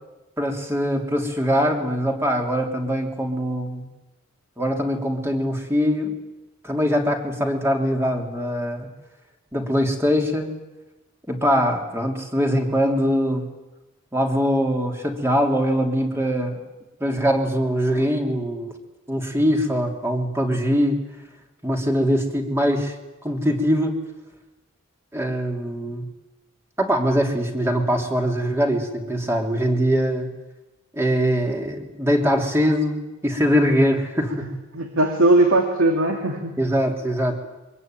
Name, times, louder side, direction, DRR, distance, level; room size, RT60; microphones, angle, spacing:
voice 1, 0.4-3.9 4.6-6.2 6.6-8.9 9.5-10.6 11.3-13.5 14.1-16.6 17.0-18.7 19.1-21.0 21.6-22.9 23.2-24.0 25.1-26.1 26.8-30.3 30.9-34.5 36.6-37.4, equal, 10° right, 3 dB, 3.1 m, -22 dB
voice 2, 34.7-36.6, right 2 dB, 85° right, 4 dB, 2.5 m, -19 dB
24.5 x 21.5 x 9.1 m, 1.1 s
head